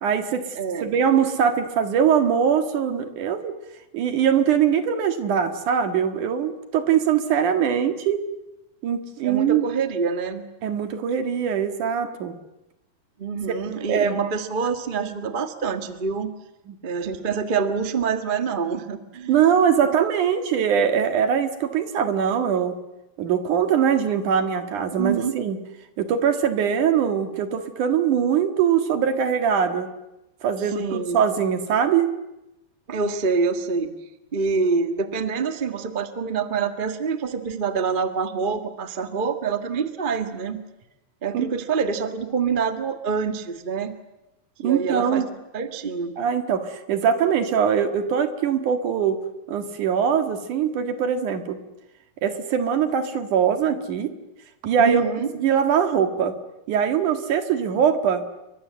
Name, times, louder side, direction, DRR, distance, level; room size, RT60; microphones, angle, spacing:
voice 1, 0.0-0.4 0.8-3.5 3.9-8.2 8.8-9.7 10.6-12.4 13.9-14.2 16.7-16.8 19.3-22.7 23.2-25.6 26.0-29.9 30.4-32.1 41.3-41.5 44.6-45.3 46.2-49.2 49.5-51.6 52.2-54.1 54.6-55.1 55.4-56.3 56.7-58.2, right 8 dB, 65° right, 8 dB, 3.2 m, -22 dB
voice 2, 0.5-0.9 9.2-10.4 13.2-16.4 16.8-19.3 24.9-25.3 30.6-31.2 32.9-33.9 34.3-40.6 41.2-44.0 44.6-45.3 45.5-46.1 54.8-55.3, right 5 dB, 45° right, 8 dB, 0.6 m, -26 dB
29.0 x 23.5 x 7.6 m, 0.94 s
omnidirectional pair, 3.9 m